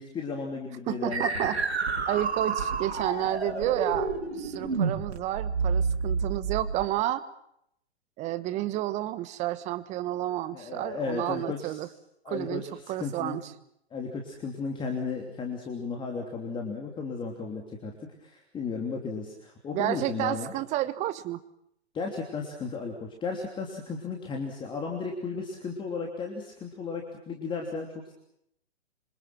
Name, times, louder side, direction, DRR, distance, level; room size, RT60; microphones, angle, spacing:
voice 1, 0.0-1.5 10.5-11.8 12.2-13.4 13.9-20.5 21.9-28.1, left 4 dB, 15° left, 1 dB, 3.2 m, -35 dB
voice 2, 0.9-1.6 2.1-7.2 8.2-11.9 12.3-13.4 19.7-21.4, right 14 dB, 20° right, 13 dB, 1.3 m, -31 dB
sound 1, 1.1-6.8, right 4 dB, 70° right, 6.1 m, -29 dB
27.0 x 26.0 x 6.1 m, 0.74 s
figure-of-eight pair, 125°, 34 cm